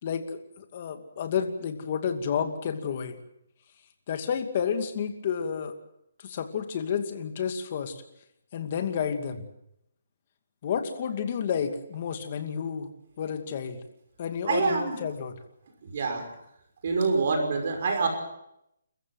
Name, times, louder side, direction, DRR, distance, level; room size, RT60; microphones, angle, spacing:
voice 1, 0.0-3.2 4.1-5.7 6.2-7.9 8.5-9.4 10.6-12.9 13.2-13.8 14.2-15.4, left 7 dB, 35° left, 7 dB, 2.5 m, -30 dB
voice 2, 14.5-15.0 15.9-16.2 16.8-18.1, right 4 dB, 45° right, 4 dB, 5.9 m, -25 dB
29.0 x 14.5 x 7.8 m, 0.79 s
hypercardioid pair, 170°, 0 cm